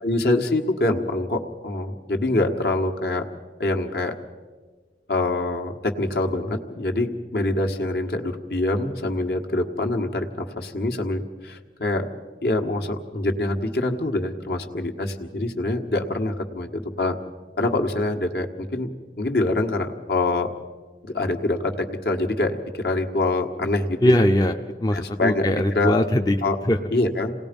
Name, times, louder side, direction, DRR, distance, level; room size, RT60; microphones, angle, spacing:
voice 1, 0.0-3.2 3.6-4.1 5.1-12.1 12.4-17.1 17.6-18.9 19.2-20.5 21.0-22.6 22.8-24.1 24.9-26.0 26.4-26.5 26.9-27.3, left 2 dB, 65° left, 3 dB, 1.6 m, -25 dB
voice 2, 24.0-26.4 26.6-26.8, left 1 dB, 20° left, 4 dB, 0.6 m, -20 dB
27.5 x 18.5 x 5.3 m, 1.4 s
head